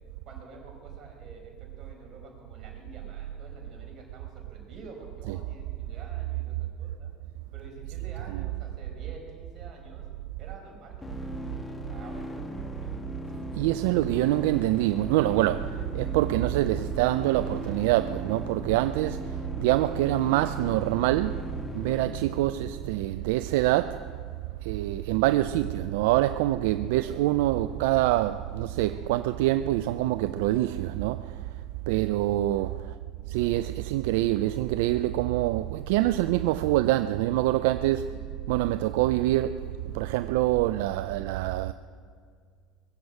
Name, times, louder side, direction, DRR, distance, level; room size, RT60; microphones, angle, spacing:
voice 1, 0.2-7.1 7.5-10.0 10.4-13.0 24.9-25.2 32.8-33.0 38.0-38.2, right 3 dB, 50° right, 4.9 m, -49 dB
sound 1, 11.0-23.0, left 1 dB, 15° left, 1.7 m, -39 dB
voice 2, 13.5-24.2 24.6-31.4 31.9-32.9 33.3-38.1 38.5-41.7, right 15 dB, 80° right, 0.3 m, -25 dB
20.5 x 7.8 x 8.3 m
hypercardioid pair, 85°, 0 cm